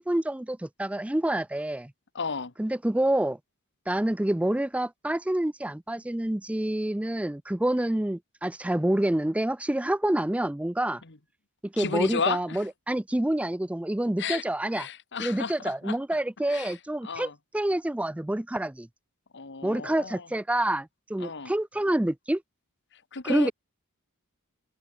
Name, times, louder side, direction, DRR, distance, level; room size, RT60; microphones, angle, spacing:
voice 1, 0.0-1.9 2.6-3.4 3.9-11.0 11.7-14.9 15.2-18.9 19.6-22.4 23.2-23.5, right 1 dB, 5° right, 0.4 m, -27 dB
voice 2, 2.1-2.5 11.0-11.2 11.8-12.7 14.2-14.4 14.7-16.0 16.5-16.8 17.0-17.4 19.3-20.3 21.2-21.5 22.9-23.5, left 5 dB, 55° left, 1.8 m, -33 dB
head